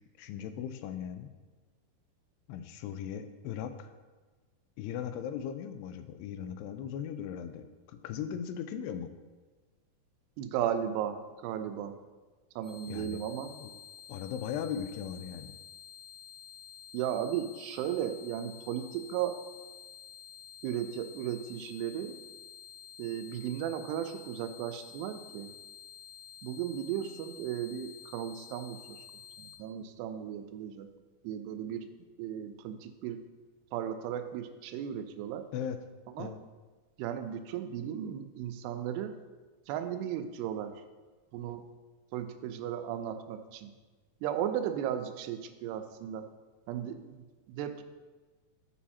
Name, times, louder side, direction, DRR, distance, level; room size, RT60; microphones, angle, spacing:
voice 1, 0.2-1.3 2.5-3.9 4.8-9.1 12.9-13.2 13.6-13.7 14.1-15.5 35.5-35.8 36.2-36.4, left 8 dB, 90° left, 9 dB, 2.7 m, -38 dB
voice 2, 10.4-12.0 12.6-13.5 16.9-19.4 20.6-22.2 23.0-25.5 26.4-29.0 29.4-30.9 31.2-31.9 32.2-33.2 33.7-35.5 36.2-36.3 37.0-39.2 39.7-40.8 41.3-41.7 42.1-43.7 44.2-46.3 46.7-47.8, right 10 dB, 90° right, 8 dB, 2.7 m, -35 dB
sound 1, 12.6-29.5, left 8 dB, 50° left, 1.4 m, -50 dB
11.0 x 5.0 x 4.2 m, 1.3 s
omnidirectional pair, 4.7 m